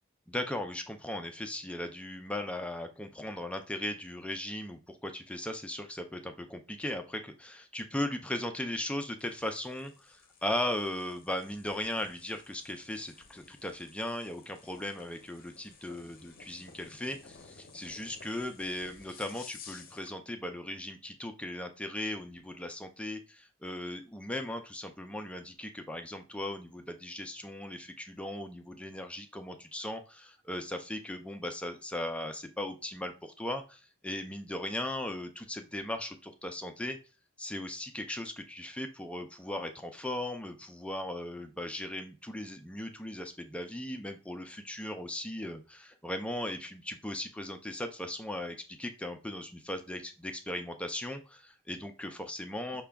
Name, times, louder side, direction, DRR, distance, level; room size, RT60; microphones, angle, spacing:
voice 1, 0.3-37.0 37.4-52.8, left 1 dB, 5° left, 6 dB, 0.3 m, -38 dB
sound 1, 9.2-20.2, left 5 dB, 45° left, 0.7 m, -55 dB
5.8 x 2.2 x 3.4 m, 0.34 s
head